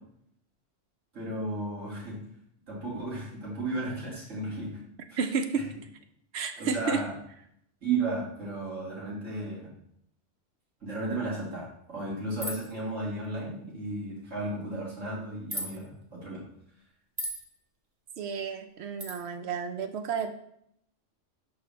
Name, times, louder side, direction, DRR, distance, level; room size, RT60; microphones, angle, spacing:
voice 1, 1.1-2.2 2.7-4.7 5.1-5.2 6.6-7.1 7.8-9.7 10.8-16.4, right 2 dB, 85° right, -6 dB, 2.5 m, -34 dB
voice 2, 5.2-5.6 6.3-7.0 18.2-20.3, right 6 dB, 65° right, 8 dB, 0.8 m, -31 dB
sound 1, 12.4-12.7 15.5-15.7 17.2-17.4 19.0-19.2, equal, 30° right, 1.1 m, -34 dB
6.7 x 4.6 x 3.2 m, 0.72 s
omnidirectional pair, 1.3 m